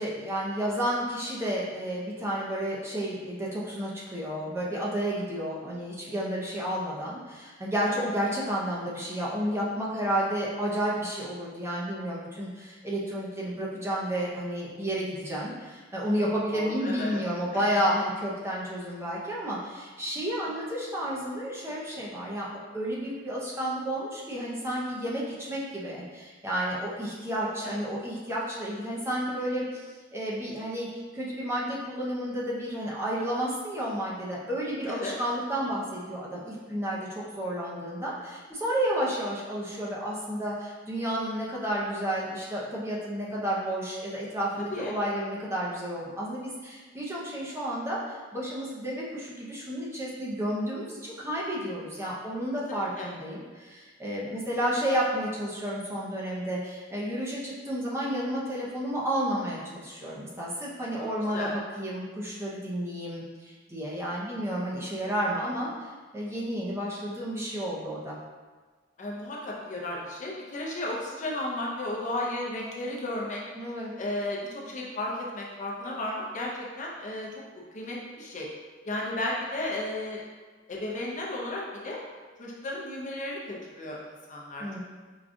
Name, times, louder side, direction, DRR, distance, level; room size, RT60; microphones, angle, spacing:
voice 1, 0.0-22.5 22.7-30.9 31.1-65.9 66.1-68.2 73.6-73.9 84.6-84.8, equal, 15° right, -6 dB, 0.6 m, -31 dB
voice 2, 16.5-17.2 27.6-27.8 34.9-35.2 44.5-45.0 52.7-53.1 61.3-61.6 69.0-73.4 74.0-77.4 77.7-78.5 78.9-80.3 80.7-82.0 82.4-84.8, left 1 dB, 40° left, -3 dB, 0.6 m, -34 dB
4.8 x 2.3 x 2.5 m, 1.4 s
head